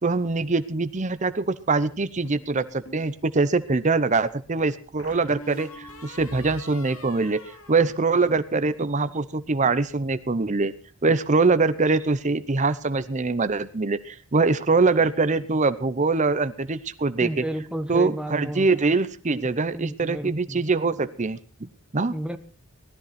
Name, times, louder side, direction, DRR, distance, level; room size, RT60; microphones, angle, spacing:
voice 1, 0.0-7.4 7.7-10.7 11.0-17.4 17.9-22.1, right 3 dB, 35° right, 13 dB, 0.7 m, -23 dB
sound 1, 2.2-3.1 5.0-8.6, left 1 dB, 85° left, 2.8 m, -44 dB
voice 2, 17.2-18.9 19.7-20.6 22.1-22.4, right 1 dB, 5° right, 8 dB, 0.9 m, -32 dB
17.5 x 13.5 x 4.2 m, 0.39 s
head